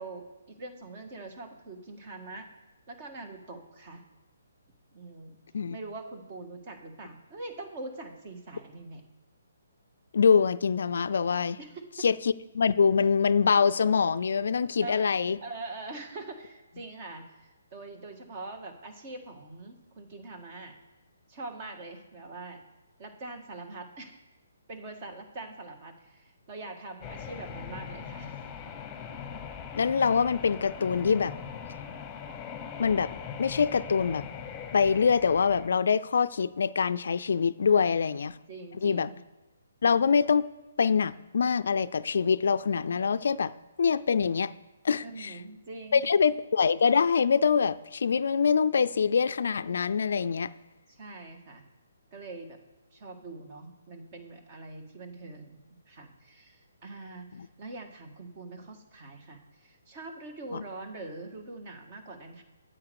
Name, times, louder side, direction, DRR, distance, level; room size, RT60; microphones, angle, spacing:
voice 1, 0.0-2.5 2.9-4.0 4.9-5.4 5.7-9.0 11.6-12.1 14.8-15.1 15.4-20.8 21.3-22.6 23.0-24.2 24.7-28.3 37.6-38.0 38.5-39.2 45.0-46.0 50.9-51.6 52.1-52.6 52.9-62.4, right 2 dB, 35° right, 5 dB, 1.6 m, -43 dB
voice 2, 10.1-11.6 12.0-15.4 29.8-31.3 32.8-34.2 34.7-38.3 38.8-39.1 39.8-40.5 40.8-43.5 43.8-44.5 44.8-45.4 45.9-50.5 57.3-57.5 60.5-60.6, left 6 dB, 70° left, 14 dB, 0.4 m, -24 dB
sound 1, 27.0-35.7, left 7 dB, 15° left, 1.0 m, -41 dB
8.6 x 7.9 x 4.8 m, 1.1 s
hypercardioid pair, 150°, 0 cm